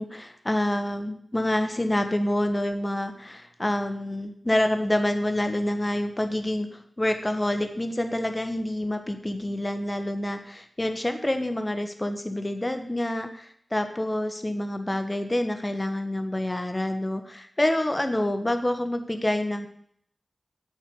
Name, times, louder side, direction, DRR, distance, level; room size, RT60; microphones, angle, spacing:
voice 1, 0.0-6.7 7.0-19.7, left 1 dB, 20° left, 7 dB, 1.4 m, -27 dB
8.2 x 7.3 x 8.6 m, 0.65 s
wide cardioid pair, 65°, 0 cm